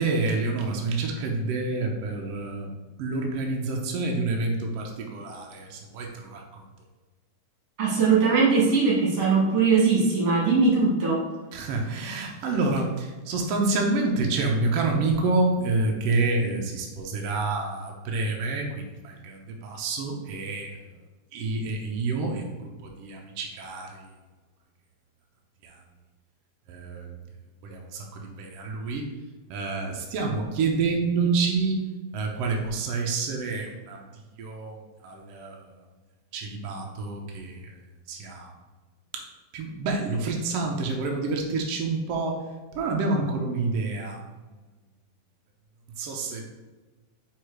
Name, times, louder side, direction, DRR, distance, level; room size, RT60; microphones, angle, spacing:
voice 1, 0.0-2.7 3.0-6.4 11.5-20.8 21.3-22.7 23.0-23.9 25.6-25.8 26.7-27.1 27.6-29.0 29.5-31.8 32.1-34.0 34.4-34.8 35.0-35.6 36.3-37.6 38.1-38.5 39.1-39.3 39.5-42.4 42.7-44.2 46.0-46.5, right 3 dB, 80° right, 1 dB, 1.4 m, -28 dB
voice 2, 7.8-11.2, right 4 dB, 55° right, -4 dB, 2.5 m, -20 dB
4.8 x 4.7 x 4.8 m, 1.3 s
omnidirectional pair, 3.7 m